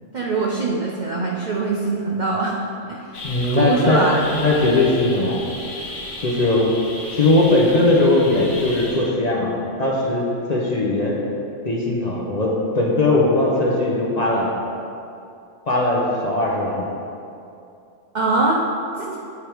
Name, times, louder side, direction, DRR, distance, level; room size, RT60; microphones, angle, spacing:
voice 1, 0.1-2.6 2.9-3.0 3.5-4.2 18.1-18.6 19.0-19.2, right 3 dB, 60° right, -2 dB, 0.5 m, -22 dB
sound 1, 3.1-9.1, left 2 dB, 90° left, 1.3 m, -34 dB
voice 2, 3.2-4.0 4.3-5.4 6.2-6.7 7.1-11.2 11.6-14.5 15.7-16.8, left 2 dB, 40° left, -4 dB, 0.7 m, -19 dB
8.2 x 3.5 x 4.5 m, 2.6 s
omnidirectional pair, 1.4 m